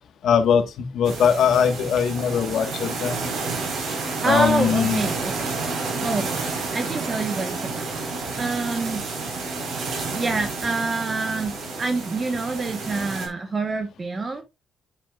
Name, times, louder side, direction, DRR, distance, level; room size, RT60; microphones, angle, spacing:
voice 1, 0.2-3.3 4.2-5.1, left 7 dB, 70° left, 1.5 m, -21 dB
sound 1, 1.0-13.3, right 3 dB, 70° right, 4.5 m, -30 dB
voice 2, 4.2-5.5 6.0-6.3 6.7-7.9 8.4-9.0 10.1-11.5 11.8-14.4, right 3 dB, 35° right, 1.2 m, -26 dB
9.5 x 7.3 x 2.4 m
cardioid pair, 90°, 0 cm